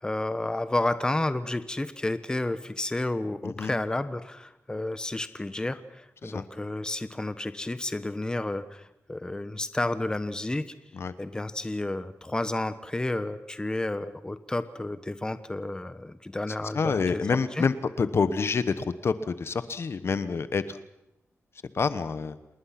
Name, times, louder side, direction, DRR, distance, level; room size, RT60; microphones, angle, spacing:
voice 1, 0.0-10.6 11.2-17.2 17.6-17.7, left 2 dB, 15° left, 12 dB, 1.1 m, -31 dB
voice 2, 16.6-20.8 21.7-22.4, left 5 dB, 55° left, 13 dB, 1.1 m, -27 dB
28.0 x 20.0 x 5.9 m, 0.85 s
wide cardioid pair, 105°, 5 cm